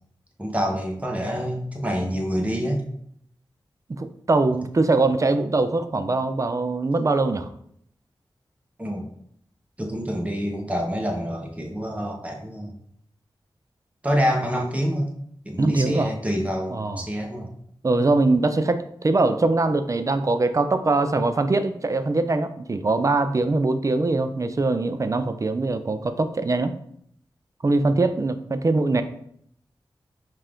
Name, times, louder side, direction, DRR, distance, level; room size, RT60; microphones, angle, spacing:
voice 1, 0.4-2.8 8.8-9.1 9.8-12.7 14.0-15.1 15.4-17.5, equal, 15° right, 1 dB, 0.9 m, -27 dB
voice 2, 3.9-7.5 15.6-16.1 16.7-17.0 17.8-26.7 27.6-29.0, right 3 dB, 35° right, 10 dB, 0.4 m, -22 dB
5.4 x 2.5 x 3.5 m, 0.67 s
wide cardioid pair, 80°, 9 cm